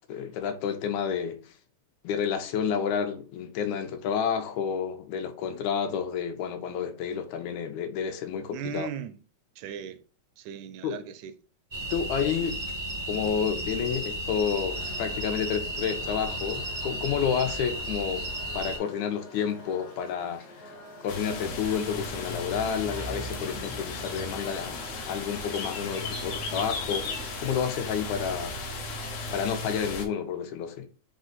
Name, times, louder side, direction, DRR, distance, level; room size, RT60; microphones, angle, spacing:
voice 1, 0.1-1.4 2.0-8.9 10.8-11.0 11.9-12.6 13.1-18.3 18.5-20.7 21.0-24.8 25.1-27.1 27.4-28.6 29.3-30.9, left 7 dB, 85° left, 2.0 m, -30 dB
voice 2, 8.5-9.2 9.6-10.0 10.4-11.3, right 8 dB, 85° right, 1.9 m, -37 dB
sound 1, 11.7-18.8, equal, 35° right, 0.6 m, -34 dB
sound 2, 14.7-27.6, left 1 dB, 55° left, 1.0 m, -48 dB
sound 3, 21.1-30.1, left 3 dB, 70° left, 1.7 m, -35 dB
5.0 x 2.5 x 3.8 m
omnidirectional pair, 3.3 m